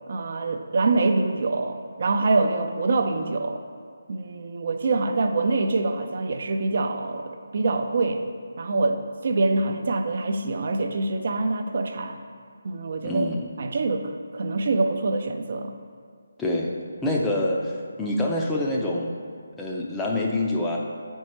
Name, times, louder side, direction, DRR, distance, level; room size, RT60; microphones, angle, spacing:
voice 1, 0.1-3.6 4.1-8.2 8.6-12.2 12.6-13.3 13.6-15.7, right 3 dB, 50° right, 6 dB, 0.5 m, -25 dB
voice 2, 13.0-13.5 16.4-16.7 17.0-17.7 18.0-19.1 19.6-20.8, left 1 dB, 10° left, -2 dB, 0.6 m, -25 dB
8.4 x 4.5 x 3.1 m, 2.1 s
figure-of-eight pair, 155°, 0 cm